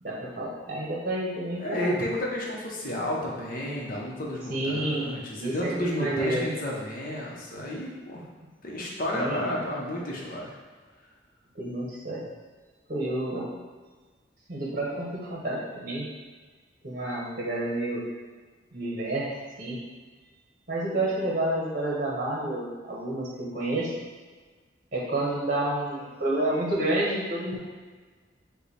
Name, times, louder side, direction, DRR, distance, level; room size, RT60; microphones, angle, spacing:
voice 1, 0.0-2.0 4.5-5.1 5.4-6.4 9.1-9.5 11.5-12.3 12.9-13.5 14.5-16.1 16.8-18.1 18.7-19.3 19.6-19.8 20.7-23.9 24.9-27.6, right 1 dB, 45° right, -4 dB, 1.0 m, -29 dB
voice 2, 1.6-8.2 8.6-10.5, left 1 dB, 50° left, -3 dB, 0.8 m, -31 dB
4.9 x 2.3 x 4.2 m, 1.4 s
head